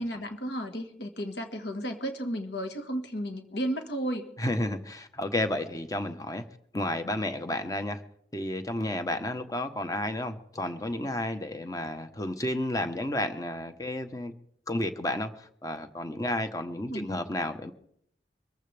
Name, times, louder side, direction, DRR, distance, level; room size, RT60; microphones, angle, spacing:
voice 1, 0.0-4.3 16.9-17.1, equal, 75° left, 6 dB, 1.7 m, -33 dB
voice 2, 4.4-6.4 6.7-8.0 8.3-14.3 14.7-17.7, left 1 dB, 20° left, 8 dB, 1.1 m, -31 dB
24.0 x 14.5 x 3.5 m, 0.70 s
head